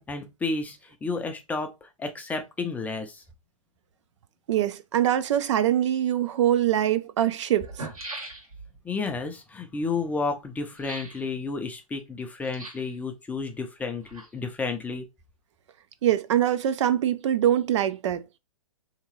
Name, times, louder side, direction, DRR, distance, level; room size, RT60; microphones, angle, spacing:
voice 1, 0.0-1.7 2.0-3.2 8.8-15.1, left 4 dB, 10° left, 0.4 m, -31 dB
voice 2, 4.5-7.8 16.0-18.2, right 11 dB, 55° right, 0.4 m, -23 dB
sound 1, 6.3-6.4 7.2-7.3 7.5-8.8 10.7-11.2 12.4-13.0 13.8-14.6 14.9-15.0, right 2 dB, 90° right, 1.3 m, -40 dB
3.4 x 2.9 x 3.0 m
hypercardioid pair, 125°, 18 cm